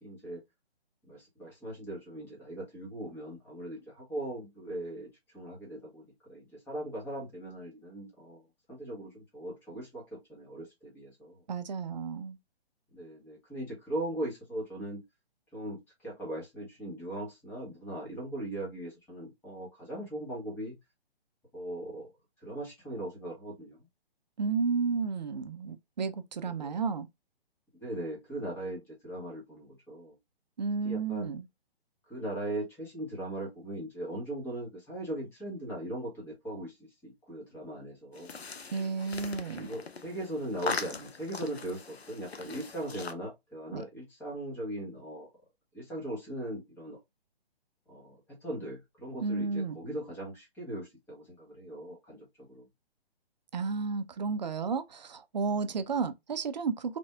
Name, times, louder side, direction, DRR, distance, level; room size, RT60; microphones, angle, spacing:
voice 1, 0.0-0.4 1.1-8.4 8.7-11.4 12.9-15.0 15.5-20.7 21.5-22.1 22.4-23.9 26.4-26.7 27.8-30.2 30.8-31.3 32.1-38.4 39.5-45.3 45.7-47.0 47.9-52.7, right 1 dB, 5° left, 1.0 m, -39 dB
voice 2, 11.5-12.4 24.4-27.1 30.6-31.4 38.7-39.7 43.7-43.8 49.2-49.8 53.5-57.0, right 5 dB, 45° right, 0.4 m, -32 dB
sound 1, 38.1-43.1, left 4 dB, 90° left, 0.6 m, -40 dB
3.3 x 2.6 x 2.3 m
figure-of-eight pair, 135°, 31 cm